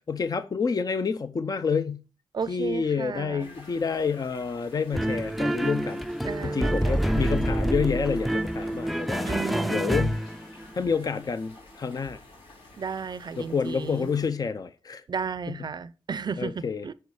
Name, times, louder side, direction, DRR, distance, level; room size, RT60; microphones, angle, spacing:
voice 1, 0.0-2.0 2.5-6.0 6.5-9.3 9.7-10.2 10.7-12.2 13.4-15.0 16.4-16.8, left 5 dB, 45° left, 0.6 m, -28 dB
voice 2, 2.3-3.5 6.2-7.2 9.3-10.0 12.7-14.1 15.1-16.9, right 6 dB, 50° right, 0.5 m, -34 dB
sound 1, 3.4-14.3, left 2 dB, 90° left, 2.8 m, -51 dB
sound 2, 4.9-10.7, right 1 dB, ahead, 0.5 m, -27 dB
9.3 x 4.8 x 4.9 m
cardioid pair, 70°, 9 cm